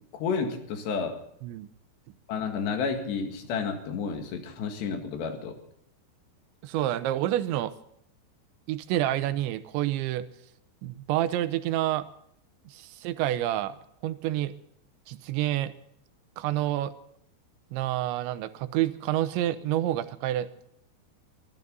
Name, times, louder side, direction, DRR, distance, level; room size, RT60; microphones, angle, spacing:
voice 1, 0.1-1.2 2.3-5.6, left 5 dB, 75° left, 5 dB, 4.1 m, -31 dB
voice 2, 6.6-7.7 8.7-10.3 10.8-12.1 12.7-13.8 14.0-14.5 15.1-15.7 16.4-16.9 17.7-20.7, right 13 dB, 90° right, 12 dB, 3.2 m, -28 dB
24.5 x 13.5 x 4.0 m, 0.72 s
omnidirectional pair, 5.1 m